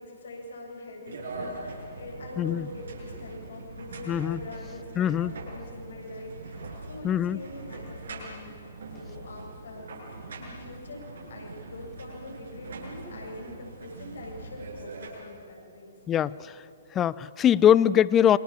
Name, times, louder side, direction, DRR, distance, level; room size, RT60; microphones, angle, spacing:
voice 1, 0.0-10.0 10.3-16.0, left 2 dB, 65° left, 1 dB, 7.7 m, -43 dB
sound 1, 1.1-15.1, right 2 dB, 60° right, 7.5 m, -42 dB
voice 2, 4.1-4.4 5.0-5.3 7.0-7.4 16.1-16.6 16.9-18.4, left 10 dB, 20° left, 20 dB, 0.5 m, -22 dB
28.5 x 25.5 x 7.4 m, 2.6 s
figure-of-eight pair, 120°, 0 cm